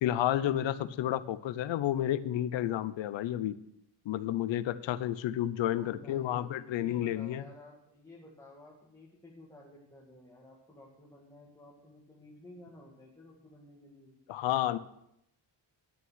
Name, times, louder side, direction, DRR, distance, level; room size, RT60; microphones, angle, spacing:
voice 1, 0.0-3.6 4.0-7.4 14.3-14.8, left 12 dB, 90° left, 14 dB, 0.8 m, -31 dB
voice 2, 5.7-14.2, left 1 dB, 5° left, -5 dB, 1.9 m, -54 dB
11.0 x 7.1 x 6.2 m, 0.78 s
wide cardioid pair, 165°, 44 cm